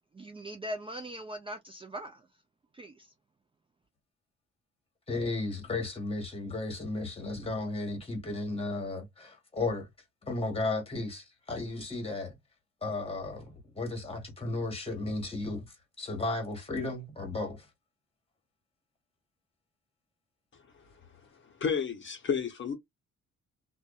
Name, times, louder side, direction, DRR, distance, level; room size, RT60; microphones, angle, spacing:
voice 1, 0.1-2.3 2.7-3.1, right 1 dB, 20° right, 0.4 m, -40 dB
voice 2, 5.1-9.9 10.2-12.4 12.8-15.6 16.0-17.7, left 2 dB, 20° left, 1.3 m, -34 dB
voice 3, 21.4-22.7, left 6 dB, 40° left, 0.7 m, -31 dB
2.5 x 2.2 x 2.2 m
cardioid pair, 90°, 30 cm